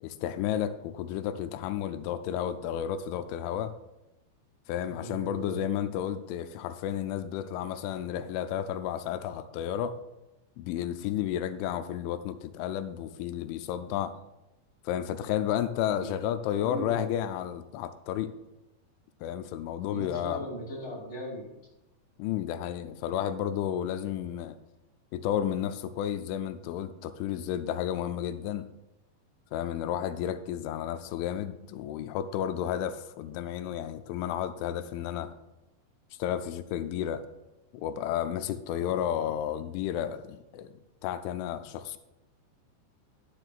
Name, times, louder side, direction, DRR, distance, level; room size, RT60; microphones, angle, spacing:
voice 1, 0.0-3.7 4.7-10.0 10.6-14.2 14.9-18.3 19.2-20.4 22.2-24.6 25.1-28.7 29.5-35.3 36.2-37.2 37.7-40.7 41.0-42.0, left 10 dB, 90° left, 10 dB, 3.0 m, -32 dB
voice 2, 4.8-5.6 15.8-16.1 16.6-17.1 19.9-21.5, equal, 20° left, -4 dB, 3.4 m, -38 dB
12.0 x 11.5 x 2.4 m, 0.96 s
omnidirectional pair, 5.3 m